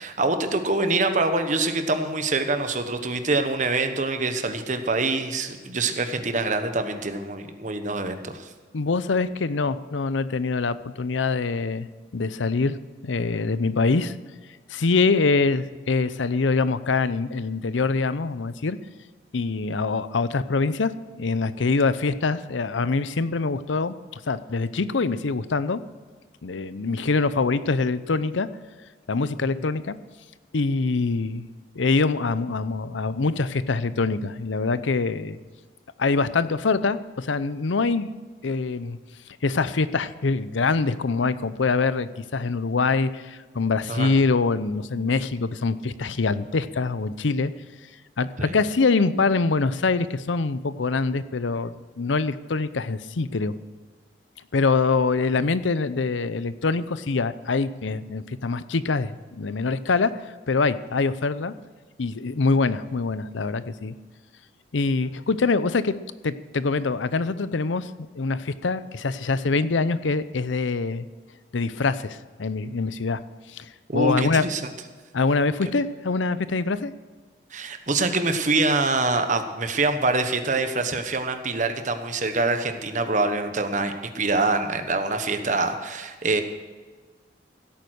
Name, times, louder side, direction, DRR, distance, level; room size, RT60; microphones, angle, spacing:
voice 1, 0.0-8.5 29.6-29.7 43.9-44.1 48.4-48.5 73.9-74.6 77.5-86.4, right 3 dB, 40° right, 8 dB, 1.2 m, -25 dB
voice 2, 8.7-11.9 12.1-12.8 13.0-14.1 14.7-18.8 19.3-25.8 26.4-28.5 29.1-30.0 30.5-31.4 31.8-35.4 36.0-38.1 38.4-39.0 39.4-47.5 48.2-53.6 54.5-60.1 60.5-61.5 62.0-63.9 64.7-67.9 68.2-71.1 71.5-73.2 73.5-74.5 75.1-76.9, left 4 dB, 85° left, 14 dB, 0.6 m, -24 dB
16.0 x 8.9 x 6.4 m, 1.4 s
head